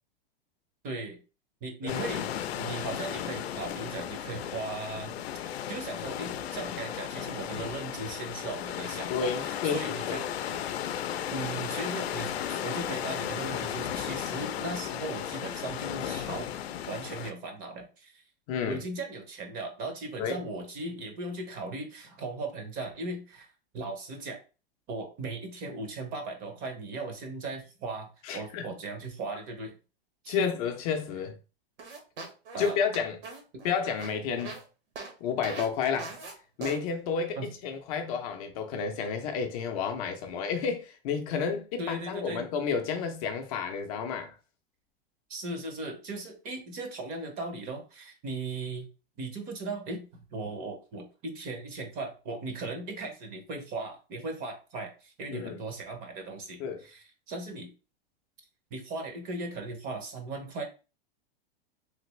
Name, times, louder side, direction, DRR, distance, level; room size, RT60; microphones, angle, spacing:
voice 1, 0.8-1.2 1.6-2.3 2.6-5.2 5.5-10.7 11.3-16.5 16.9-18.2 18.7-24.4 24.9-29.8 30.2-30.5 32.5-32.8 33.5-33.6 37.4-37.5 41.8-42.4 45.3-48.9 49.2-57.7 58.7-60.6, right 3 dB, 30° right, 0.7 m, -38 dB
voice 2, 1.8-2.2 9.1-10.2 18.5-18.8 20.2-20.4 28.2-28.6 30.3-31.3 32.6-33.2 33.6-34.6 35.2-36.1 36.6-44.3 55.3-55.6 56.6-56.8, left 6 dB, 40° left, 0.5 m, -31 dB
sound 1, 1.9-17.3, left 10 dB, 85° left, 0.5 m, -35 dB
sound 2, 31.8-34.6 35.0-35.1 35.4-35.7 36.0-36.3 36.6-36.8, right 3 dB, 60° right, 1.3 m, -40 dB
3.3 x 2.5 x 3.0 m
supercardioid pair, 150°, 30 cm